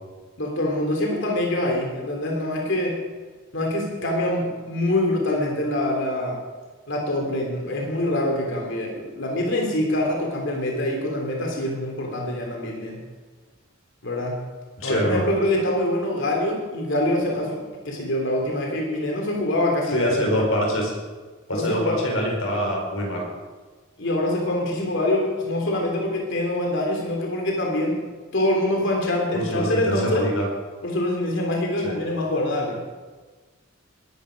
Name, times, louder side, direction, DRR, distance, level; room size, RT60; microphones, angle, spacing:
voice 1, 0.4-3.0 3.5-6.4 6.9-13.0 14.0-14.4 14.8-20.5 21.5-22.0 24.0-28.0 28.3-30.3 30.8-32.8, left 1 dB, 60° left, 0 dB, 3.2 m, -25 dB
voice 2, 14.8-15.2 19.9-20.9 21.5-23.3 29.3-30.4 31.8-32.0, equal, 85° left, 0 dB, 4.7 m, -24 dB
20.5 x 11.5 x 5.2 m, 1.4 s
head